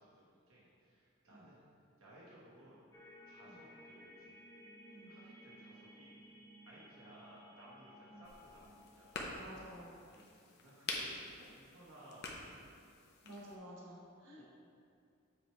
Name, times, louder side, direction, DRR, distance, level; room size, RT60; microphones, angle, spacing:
voice 1, 0.0-1.6 2.0-2.8 3.2-4.4 5.1-6.4 6.7-9.5 9.9-12.7 14.4-14.5, right 1 dB, 90° right, -6 dB, 1.1 m, -59 dB
sound 1, 2.9-10.2, equal, 15° left, 0.4 m, -58 dB
sound 2, 8.2-13.6, left 3 dB, 55° left, 0.7 m, -47 dB
voice 2, 9.3-10.0 13.2-14.4, equal, 65° right, -5 dB, 1.3 m, -52 dB
7.6 x 3.1 x 4.5 m, 2.4 s
head